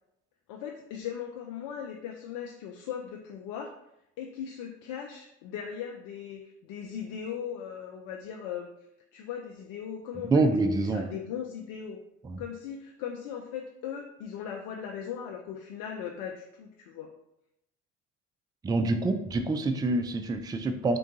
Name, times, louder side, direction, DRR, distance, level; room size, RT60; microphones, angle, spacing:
voice 1, 0.5-3.7 4.2-8.7 9.1-10.4 10.8-12.0 12.4-17.1, left 8 dB, 65° left, 1 dB, 0.5 m, -38 dB
voice 2, 10.3-11.1 12.2-12.4 18.6-21.0, right 2 dB, 10° right, 7 dB, 0.3 m, -26 dB
3.7 x 2.3 x 3.9 m, 0.81 s
hypercardioid pair, 55°, 36 cm